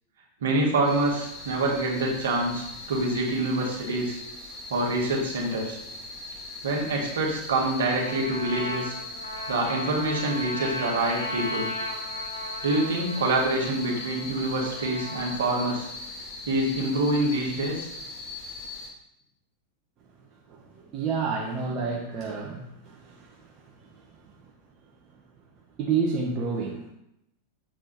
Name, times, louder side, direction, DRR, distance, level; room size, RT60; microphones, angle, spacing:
voice 1, 0.4-4.2 4.7-5.8 6.6-9.0 9.5-11.7 12.6-15.9 16.5-17.9, right 2 dB, 60° right, -2 dB, 2.2 m, -26 dB
sound 1, 0.8-18.9, left 2 dB, 20° left, 3.2 m, -39 dB
Trumpet, 7.8-15.9, left 1 dB, 80° left, 1.5 m, -37 dB
voice 2, 20.5-24.5 25.1-25.2 25.8-26.9, right 5 dB, 35° right, -2 dB, 1.3 m, -31 dB
7.8 x 4.8 x 4.5 m, 0.82 s
figure-of-eight pair, 90°, 0 cm